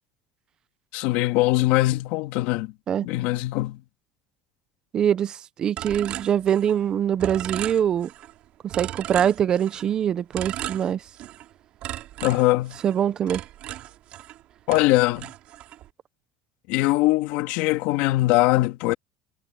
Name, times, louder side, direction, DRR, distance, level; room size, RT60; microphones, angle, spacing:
voice 1, 0.9-2.7 3.0-3.8 12.2-12.8 14.7-15.3 16.7-18.9, left 19 dB, 65° left, 2.1 m, -22 dB
voice 2, 4.9-8.1 8.6-11.0 12.8-13.4, right 9 dB, 30° right, 0.6 m, -23 dB
sound 1, 5.8-6.9 7.2-8.3 8.7-9.9 10.3-11.5 11.8-14.4 14.7-15.9, right 14 dB, 45° right, 3.5 m, -36 dB
cardioid pair, 160°, 3 cm